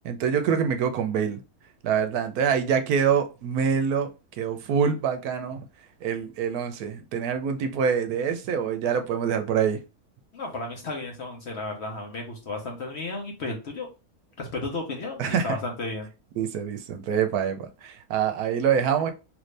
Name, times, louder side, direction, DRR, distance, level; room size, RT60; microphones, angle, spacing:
voice 1, 0.0-1.4 1.8-4.1 4.4-5.6 6.0-9.8 15.2-15.6 16.4-19.1, right 7 dB, 80° right, 1.1 m, -25 dB
voice 2, 10.3-13.9 14.4-16.1, left 2 dB, 50° left, 1.0 m, -33 dB
3.1 x 2.6 x 3.2 m
omnidirectional pair, 1.6 m